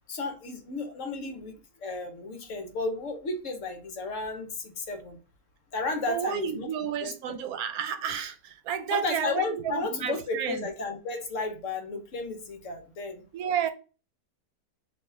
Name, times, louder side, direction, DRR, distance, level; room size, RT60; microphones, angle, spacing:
voice 1, 0.1-1.5 1.8-5.2 5.7-6.7 7.0-7.4 8.9-13.2, left 3 dB, 60° left, 1.1 m, -33 dB
voice 2, 6.1-10.6 13.3-13.7, right 9 dB, 75° right, 1.0 m, -31 dB
4.1 x 2.7 x 3.2 m
omnidirectional pair, 1.6 m